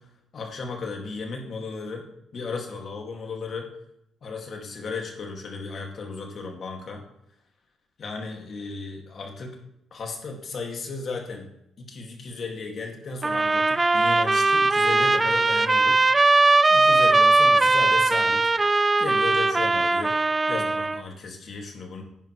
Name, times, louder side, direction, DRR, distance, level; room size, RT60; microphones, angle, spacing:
voice 1, 0.3-2.0 2.3-3.7 4.2-7.0 8.0-9.5 9.9-11.5 11.8-16.0 16.3-16.4 16.7-18.4 19.0-20.2 20.5-22.0, left 4 dB, 50° left, 1 dB, 2.3 m, -35 dB
sound 1, 13.2-21.0, right 3 dB, 20° right, 0.4 m, -20 dB
10.5 x 10.0 x 3.3 m, 0.79 s
cardioid pair, 90°, 0 cm